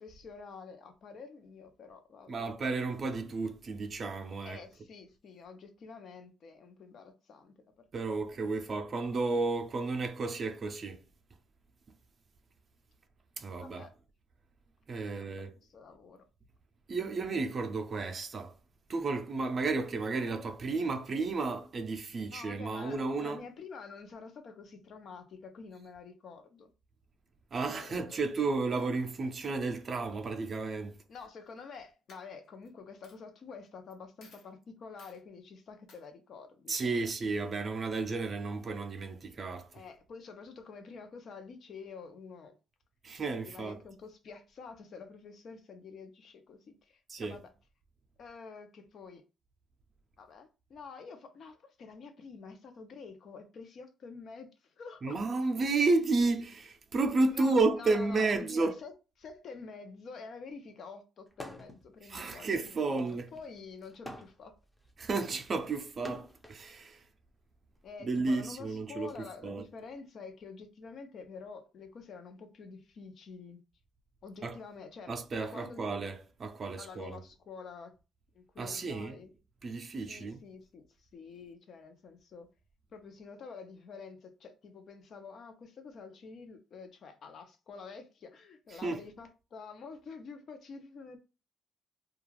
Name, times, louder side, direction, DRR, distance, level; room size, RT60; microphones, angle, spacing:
voice 1, 0.0-2.5 4.4-7.8 8.7-8.8 13.6-13.9 14.9-16.2 22.3-26.7 27.5-28.3 31.1-37.1 39.7-42.6 43.4-47.5 48.2-49.2 50.2-55.2 57.3-64.5 67.8-73.6 74.2-75.1 75.5-75.8 76.7-77.9 78.3-79.3 80.1-82.5 82.9-91.2, left 5 dB, 60° left, 0.6 m, -48 dB
voice 2, 2.3-4.6 7.9-11.0 13.4-13.9 14.9-15.5 16.9-18.5 18.9-23.4 27.5-31.0 36.7-39.7 43.0-43.8 47.1-47.4 55.0-58.7 62.1-63.3 65.0-67.0 68.0-69.1 69.4-69.6 74.4-74.6 75.1-77.2 78.6-79.2 79.6-80.4 88.8-89.0, right 3 dB, 45° right, 0.5 m, -32 dB
Coin (dropping), 31.5-31.7 32.1-32.7 33.0-33.2 33.9-34.0 34.2-34.5 35.0-35.2 35.9-36.0, left 3 dB, 80° left, 1.1 m, -58 dB
sound 1, 61.3-61.9 62.2-66.6 67.5-69.1, left 1 dB, 5° left, 0.5 m, -49 dB
2.3 x 2.3 x 3.1 m
cardioid pair, 90°, 0 cm